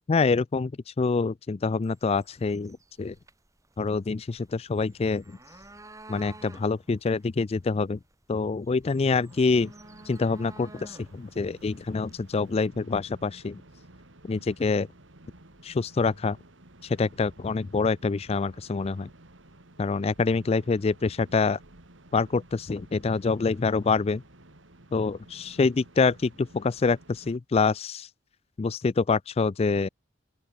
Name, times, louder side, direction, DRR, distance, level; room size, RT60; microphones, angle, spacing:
voice 1, 0.1-3.1 3.8-5.2 6.1-8.0 8.3-9.7 10.1-13.6 14.3-14.9 15.6-16.4 16.8-19.1 19.8-21.6 22.1-24.2 24.9-28.1 28.6-29.9, left 4 dB, 30° left, 0.4 m, -26 dB
sound 1, 1.8-12.7, right 2 dB, 15° right, 2.8 m, -52 dB
sound 2, 9.3-27.4, right 1 dB, 80° right, 3.2 m, -53 dB
open air
head